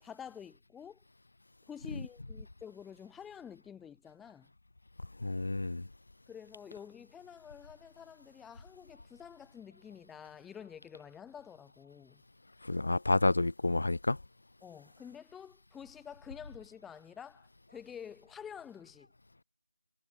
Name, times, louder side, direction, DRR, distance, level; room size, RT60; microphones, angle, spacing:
voice 1, 0.0-1.0 1.7-4.5 6.3-12.2 14.6-19.1, left 8 dB, 5° left, 0.7 m, -49 dB
voice 2, 5.2-5.9 12.6-14.2, left 2 dB, 55° left, 0.6 m, -29 dB
figure-of-eight pair, 175°, 0 cm